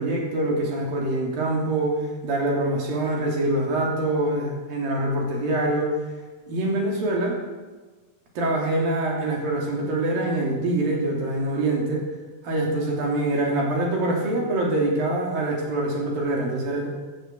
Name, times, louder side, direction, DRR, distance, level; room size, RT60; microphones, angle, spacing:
voice 1, 0.0-5.9 6.5-7.4 8.4-12.1 12.4-16.9, right 2 dB, 80° right, -1 dB, 4.8 m, -24 dB
14.5 x 11.5 x 7.8 m, 1.3 s
omnidirectional pair, 4.0 m